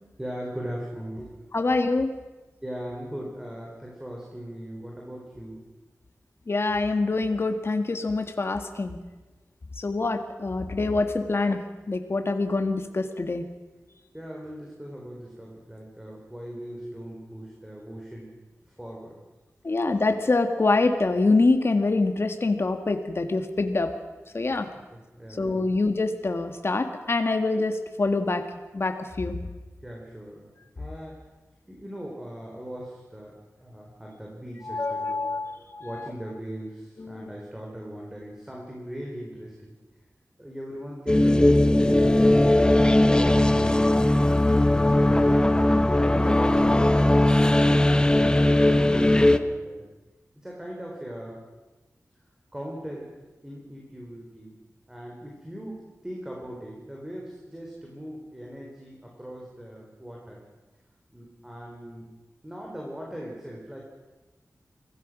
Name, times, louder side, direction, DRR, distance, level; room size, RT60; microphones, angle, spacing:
voice 1, 0.2-1.4 2.6-5.6 14.1-18.3 18.7-19.2 19.7-19.8 24.9-25.8 29.8-30.5 30.8-31.2 31.7-33.3 33.6-35.2 35.8-39.8 40.4-42.6 43.0-43.7 44.5-49.8 50.4-51.4 52.5-53.1 53.4-54.5 54.9-60.4 61.1-62.1 62.4-63.8, equal, 10° right, -2 dB, 4.1 m, -39 dB
voice 2, 1.5-2.1 6.5-9.0 9.8-11.6 11.9-13.4 19.6-23.9 24.3-24.7 25.4-28.4 28.7-29.4 34.7-36.1 37.1-37.3, left 3 dB, 50° left, 6 dB, 1.8 m, -25 dB
sound 1, 41.1-49.4, left 1 dB, 15° left, 1.0 m, -19 dB
25.0 x 17.0 x 6.3 m, 1.2 s
wide cardioid pair, 105°, 6 cm